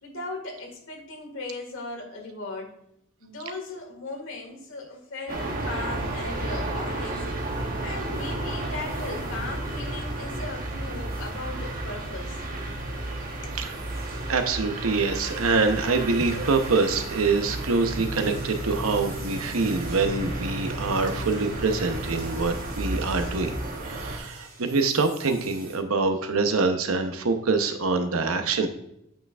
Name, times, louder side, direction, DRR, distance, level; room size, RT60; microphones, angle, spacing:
voice 1, 0.0-2.7 3.2-7.2 7.8-12.4 13.4-13.6, left 2 dB, 65° left, 2 dB, 1.9 m, -37 dB
sound 1, 5.3-24.2, right 2 dB, 40° right, 1.1 m, -32 dB
sound 2, 7.4-25.8, right 1 dB, 65° right, 2.4 m, -45 dB
voice 2, 14.3-23.6 23.8-28.7, right 4 dB, 80° right, 7 dB, 0.8 m, -25 dB
8.8 x 5.7 x 2.4 m, 0.78 s
head